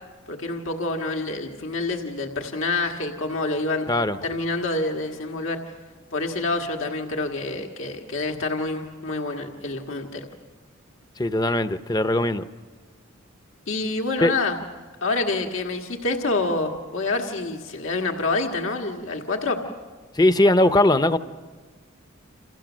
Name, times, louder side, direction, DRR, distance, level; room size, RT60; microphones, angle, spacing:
voice 1, 0.3-3.9 4.2-5.6 6.1-10.3 13.7-14.6 15.0-19.6, left 2 dB, 75° left, 2 dB, 1.7 m, -27 dB
voice 2, 3.9-4.2 11.2-12.4 14.2-14.3 20.1-21.2, left 1 dB, 20° left, 11 dB, 0.7 m, -19 dB
29.0 x 28.0 x 6.3 m, 1.4 s
head